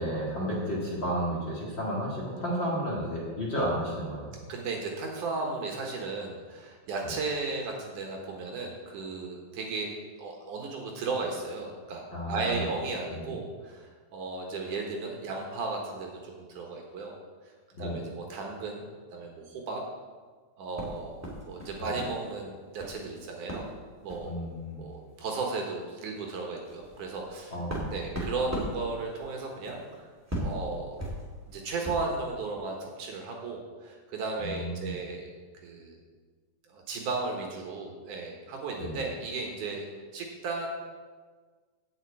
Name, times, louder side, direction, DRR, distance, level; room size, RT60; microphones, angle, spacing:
voice 1, 0.0-4.3 7.0-7.1 12.1-12.7 13.1-13.4 17.8-18.0 24.2-24.8 27.5-27.9 34.4-34.9 38.8-39.0, equal, 40° left, -5 dB, 2.2 m, -32 dB
voice 2, 4.5-9.9 10.2-17.2 17.8-18.8 19.1-19.8 20.6-21.2 21.5-23.7 24.0-24.4 24.7-27.5 27.9-30.1 30.4-31.0 31.5-35.3 35.6-36.0 36.7-39.9 40.1-40.7, right 3 dB, 65° right, 1 dB, 2.6 m, -35 dB
sound 1, 20.7-22.2 22.4-23.0 23.5-23.7 24.0-24.3 25.2-25.3 25.6-25.8 26.3-32.2, equal, 5° right, 1.8 m, -38 dB
8.0 x 7.0 x 8.4 m, 1.5 s
omnidirectional pair, 4.1 m